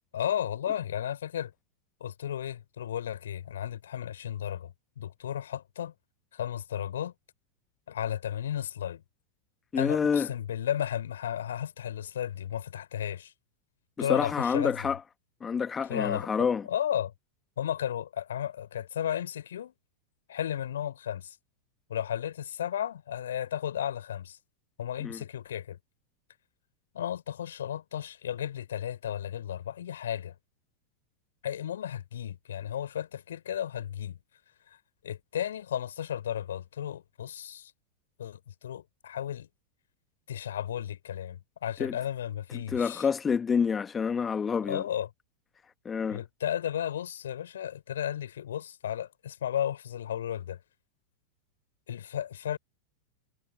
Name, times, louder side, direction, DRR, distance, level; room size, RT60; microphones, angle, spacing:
voice 1, 0.1-1.5 2.0-5.9 6.3-7.1 7.9-9.0 9.7-13.3 14.0-14.9 15.9-17.1 17.6-19.7 20.3-21.4 21.9-24.4 24.8-25.8 26.9-30.3 31.4-34.2 35.0-37.7 38.2-39.5 40.3-43.1 44.6-45.1 46.1-50.6 51.9-52.6, left 10 dB, 65° left, 3.2 m, -34 dB
voice 2, 9.7-10.3 14.0-15.0 15.4-16.6 25.0-25.2 41.8-41.9 42.5-44.8 45.8-46.2, left 6 dB, 20° left, 1.1 m, -28 dB
figure-of-eight pair, 90°, 0 cm